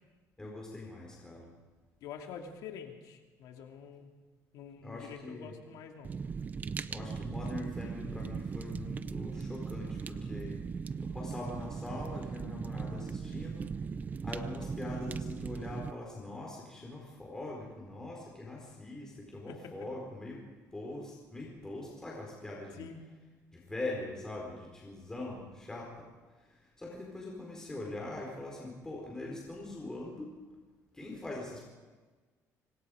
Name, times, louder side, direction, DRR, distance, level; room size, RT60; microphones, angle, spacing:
voice 1, 0.4-1.5 4.8-5.5 6.9-10.7 11.0-13.7 14.2-20.4 20.7-22.8 23.5-26.1 26.4-30.3 30.9-31.7, left 2 dB, 10° left, -2 dB, 4.5 m, -42 dB
voice 2, 2.0-4.1 4.5-6.1 19.5-19.7 22.8-23.0, left 6 dB, 75° left, 3 dB, 2.9 m, -46 dB
Fire, 6.0-15.9, right 5 dB, 25° right, 0.7 m, -38 dB
26.0 x 25.0 x 5.1 m, 1.3 s
cardioid pair, 165°, 7 cm